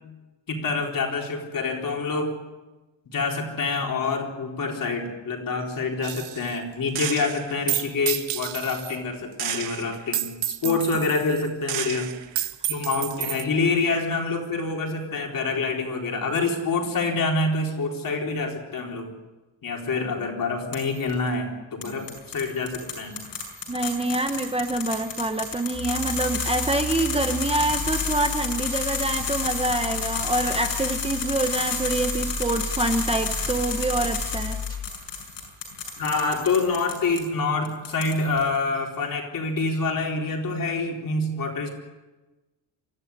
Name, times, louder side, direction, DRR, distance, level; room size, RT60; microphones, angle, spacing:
voice 1, 0.5-2.4 3.1-12.1 12.7-19.1 19.6-23.2 36.0-41.7, left 3 dB, 45° left, 1 dB, 4.1 m, -26 dB
Gunshot gunfire, 6.0-6.6 7.0-9.0 9.4-13.4, right 12 dB, 65° right, 1.1 m, -30 dB
sound 1, 20.7-21.1 21.8-37.2 37.6-38.4, left 5 dB, 70° left, 6.8 m, -32 dB
voice 2, 23.7-34.6, right 2 dB, 15° right, 6 dB, 0.9 m, -26 dB
sound 2, 25.7-34.9, left 2 dB, 10° left, 2.7 m, -34 dB
24.5 x 14.5 x 9.7 m, 1.2 s
cardioid pair, 165°, 44 cm